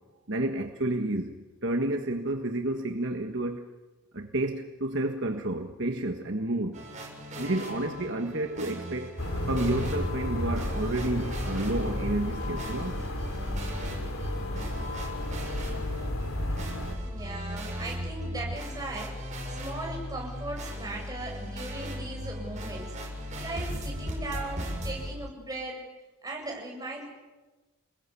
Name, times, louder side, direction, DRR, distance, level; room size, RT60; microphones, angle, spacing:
voice 1, 0.3-3.7 4.1-6.9 7.4-9.2 9.5-13.0, right 1 dB, 55° right, 1.6 m, -30 dB
sound 1, 6.7-25.1, right 1 dB, 35° right, 7.2 m, -39 dB
sound 2, 7.4-13.6 13.9-25.3, left 2 dB, 30° left, 0.8 m, -41 dB
sound 3, 9.2-16.9, left 1 dB, 75° left, 3.4 m, -33 dB
voice 2, 17.0-25.8 26.2-27.0, right 2 dB, 15° right, 7.9 m, -38 dB
29.5 x 21.0 x 8.5 m
head